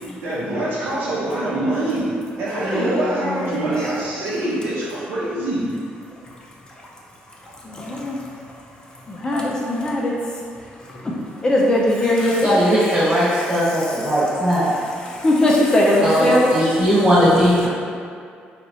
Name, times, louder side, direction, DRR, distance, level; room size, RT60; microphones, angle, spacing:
voice 1, 0.2-2.1 2.4-5.7, right 1 dB, 80° right, -7 dB, 0.7 m, -24 dB
voice 2, 2.6-3.7 7.4-8.3 9.1-10.2 10.8-11.1 11.4-12.7 13.0-13.2 13.5-16.9, left 1 dB, 20° left, -3 dB, 0.3 m, -21 dB
voice 3, 12.2-14.8 16.0-17.7, equal, 30° right, -10 dB, 1.1 m, -18 dB
2.9 x 2.3 x 2.6 m, 2.2 s
cardioid pair, 135°, 4 cm